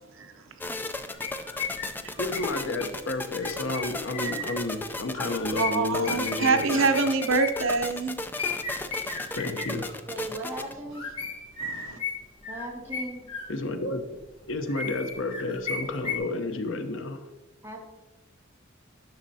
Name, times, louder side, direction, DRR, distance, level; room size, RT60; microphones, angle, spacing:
sound 1, 0.6-10.7, left 2 dB, 10° left, 0.4 m, -35 dB
sound 2, 1.1-4.6 5.2-7.8 8.4-10.0 10.7-13.9 14.2-16.2, left 4 dB, 25° left, 1.1 m, -35 dB
voice 1, 2.2-6.9 9.3-9.9 13.5-14.0 14.5-17.3, left 2 dB, 70° left, 0.8 m, -31 dB
voice 2, 5.6-8.1 11.6-12.0, right 4 dB, 80° right, 0.8 m, -25 dB
voice 3, 10.0-11.0 12.5-13.3 17.6-17.8, right 1 dB, 10° right, 1.7 m, -37 dB
10.5 x 6.4 x 2.8 m
head